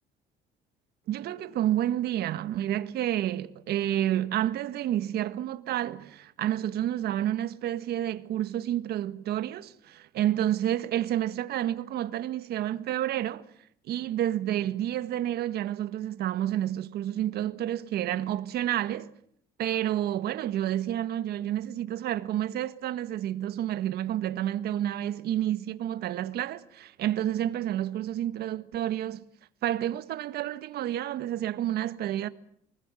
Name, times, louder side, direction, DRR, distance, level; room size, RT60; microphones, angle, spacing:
voice 1, 1.1-13.4 13.9-19.1 19.6-29.2 29.6-32.3, right 12 dB, 70° right, 1.7 m, -29 dB
25.5 x 20.0 x 9.1 m
cardioid pair, 110°, 17 cm